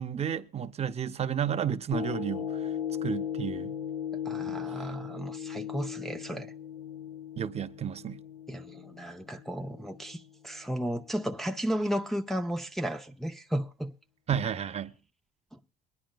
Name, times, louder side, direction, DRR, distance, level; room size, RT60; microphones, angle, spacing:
voice 1, 0.0-2.7 3.0-3.7 4.5-4.6 7.4-8.2 14.3-14.9, right 8 dB, 40° right, 0.6 m, -32 dB
sound 1, 1.9-10.3 10.8-10.9, left 9 dB, 45° left, 1.5 m, -37 dB
voice 2, 4.3-6.5 8.5-13.9, equal, ahead, 0.6 m, -34 dB
23.0 x 10.5 x 2.2 m
cardioid pair, 110°, 17 cm